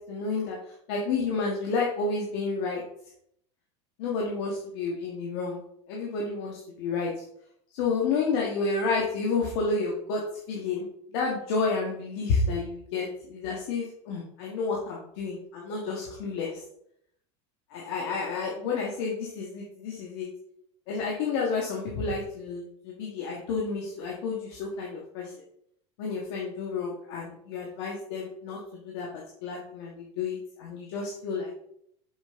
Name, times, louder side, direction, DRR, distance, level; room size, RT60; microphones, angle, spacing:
voice 1, 0.0-2.8 4.0-5.6 5.9-7.2 7.7-10.2 10.5-16.6 17.7-20.3 20.9-25.3 26.0-31.6, left 4 dB, 60° left, -2 dB, 1.8 m, -30 dB
7.2 x 6.5 x 3.8 m, 0.70 s
supercardioid pair, 165°, 15 cm